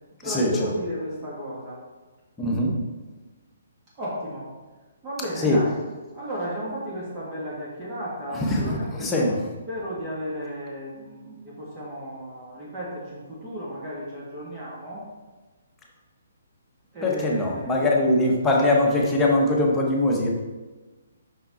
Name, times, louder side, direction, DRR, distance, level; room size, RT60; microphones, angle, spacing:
voice 1, 0.2-1.8 4.0-4.5 5.0-5.8 6.1-9.4 9.7-15.1 16.9-17.8, equal, 25° right, -8 dB, 1.9 m, -34 dB
voice 2, 2.4-2.8 5.4-5.6 8.3-8.8 9.0-9.4 17.0-20.3, left 1 dB, 10° left, -2 dB, 1.2 m, -21 dB
5.8 x 5.8 x 4.2 m, 1.2 s
figure-of-eight pair, 135°, 0 cm